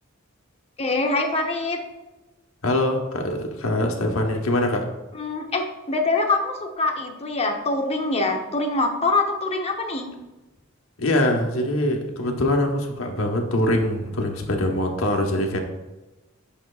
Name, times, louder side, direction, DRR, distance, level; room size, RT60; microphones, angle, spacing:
voice 1, 0.8-1.8 5.1-10.1, left 2 dB, 30° left, 3 dB, 0.8 m, -24 dB
voice 2, 2.6-4.9 11.0-15.6, left 1 dB, 80° left, 2 dB, 1.1 m, -23 dB
8.3 x 6.2 x 2.4 m, 1.1 s
head